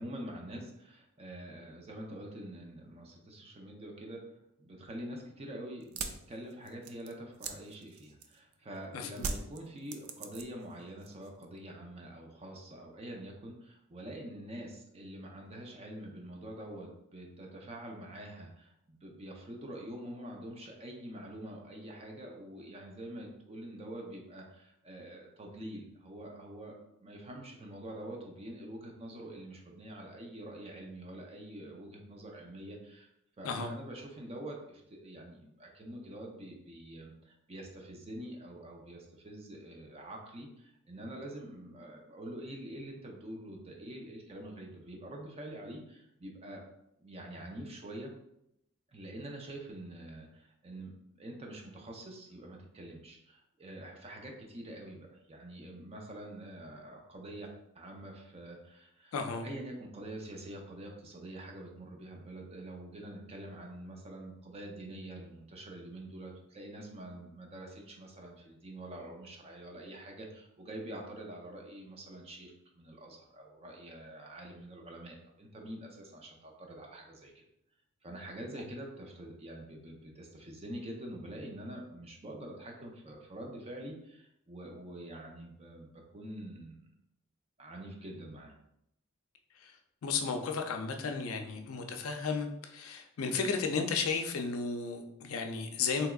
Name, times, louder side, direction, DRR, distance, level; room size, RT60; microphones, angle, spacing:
voice 1, 0.0-4.2 4.6-26.8 27.0-33.1 33.4-46.6 47.0-48.1 48.9-50.9 51.2-59.1 59.4-77.4 78.0-86.9 87.6-88.5, right 1 dB, 30° right, 1 dB, 0.5 m, -46 dB
sound 1, 5.8-8.5 9.2-10.7 11.0-11.6, right 5 dB, 85° right, 0.3 m, -40 dB
voice 2, 8.9-9.3 33.4-33.7 59.1-59.4 89.6-89.8 90.0-96.1, left 5 dB, 85° left, 5 dB, 0.4 m, -34 dB
3.4 x 2.9 x 2.3 m, 0.80 s
head